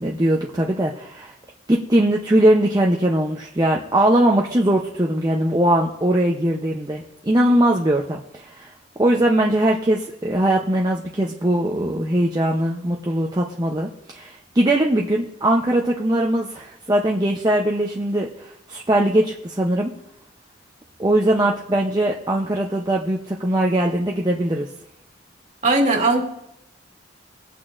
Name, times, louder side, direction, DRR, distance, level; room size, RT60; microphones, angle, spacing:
voice 1, 0.0-1.3 1.7-8.7 9.0-19.9 21.0-24.7, right 1 dB, 20° right, -1 dB, 0.7 m, -20 dB
voice 2, 25.6-26.2, right 2 dB, 40° right, 1 dB, 1.8 m, -18 dB
21.5 x 8.5 x 2.5 m, 0.81 s
head